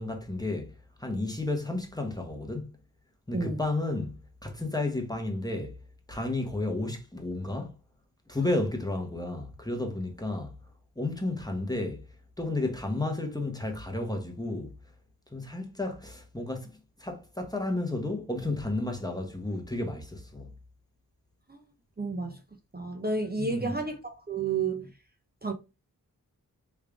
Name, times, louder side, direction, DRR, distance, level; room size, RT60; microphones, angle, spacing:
voice 1, 0.0-2.7 3.3-4.1 4.4-5.8 6.1-7.8 8.3-10.6 11.0-12.1 12.4-14.7 15.3-20.6 23.4-23.8, left 2 dB, 10° left, 1.0 m, -32 dB
voice 2, 22.0-22.4 22.7-24.9 25.4-25.5, right 4 dB, 25° right, 0.8 m, -31 dB
3.4 x 2.3 x 3.4 m
cardioid pair, 45°, 38 cm